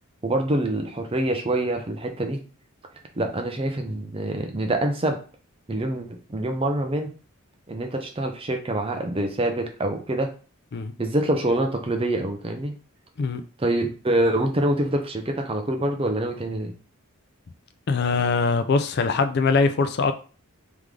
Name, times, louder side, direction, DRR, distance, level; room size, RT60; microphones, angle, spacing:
voice 1, 0.2-2.4 3.2-5.2 5.7-7.1 7.7-10.3 11.0-12.7 13.6-16.7, right 1 dB, 25° right, 0.6 m, -25 dB
voice 2, 17.9-20.1, left 4 dB, 50° left, 0.4 m, -22 dB
3.6 x 3.6 x 3.2 m
head